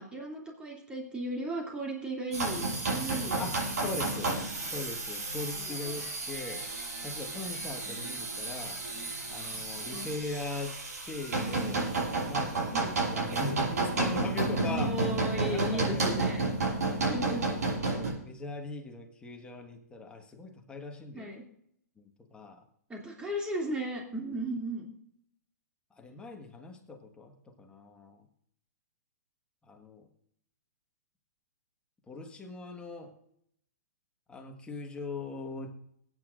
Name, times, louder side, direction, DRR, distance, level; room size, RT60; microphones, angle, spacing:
voice 1, 0.0-3.4 4.0-4.3 4.6-4.7 5.5-6.0 7.6-7.9 9.9-10.1 12.7-13.0 14.7-16.4 17.0-17.5 21.1-21.4 22.9-24.9, right 1 dB, 10° right, -1 dB, 2.7 m, -36 dB
sound 1, 2.3-18.1, right 3 dB, 70° right, 5.8 m, -32 dB
voice 2, 3.4-4.3 4.7-6.7 7.0-8.8 9.3-10.8 11.0-11.9 12.3-15.0 15.4-16.5 17.0-17.5 17.9-21.3 22.0-22.1 22.3-22.6 25.9-28.2 29.6-30.1 32.1-33.1 34.3-35.7, left 3 dB, 10° left, 3 dB, 1.5 m, -40 dB
22.0 x 9.2 x 2.6 m, 0.71 s
hypercardioid pair, 130°, 9 cm